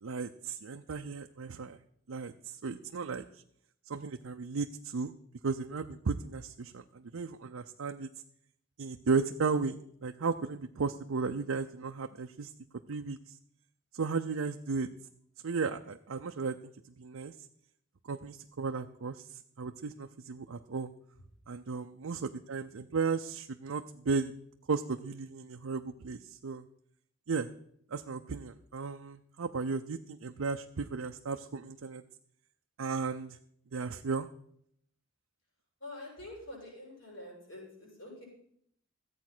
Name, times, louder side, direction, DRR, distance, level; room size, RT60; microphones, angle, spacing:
voice 1, 0.0-1.8 2.1-3.2 3.9-5.1 5.4-8.1 8.8-12.5 12.9-13.3 13.9-14.9 15.4-16.6 17.0-17.3 18.1-20.9 21.5-24.3 24.7-26.7 27.3-27.5 27.9-32.0 32.8-33.4 33.7-34.3, right 4 dB, 85° right, 5 dB, 0.6 m, -35 dB
voice 2, 35.8-38.3, left 1 dB, 60° left, -3 dB, 6.7 m, -46 dB
14.0 x 8.4 x 6.1 m, 0.69 s
head